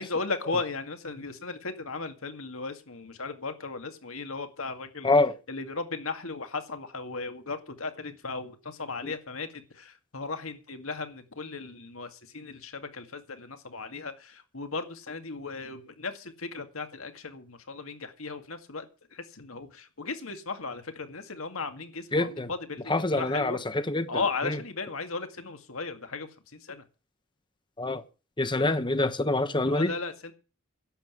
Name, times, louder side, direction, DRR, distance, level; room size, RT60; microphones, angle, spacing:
voice 1, 0.0-5.1 5.5-18.8 19.1-23.6 24.1-26.8 28.6-28.8 29.6-30.3, left 4 dB, 70° left, 2.1 m, -36 dB
voice 2, 22.1-22.5 22.9-24.1 24.4-24.6 27.8-28.0 28.4-29.9, left 2 dB, 20° left, 1.1 m, -25 dB
11.5 x 8.0 x 9.1 m
head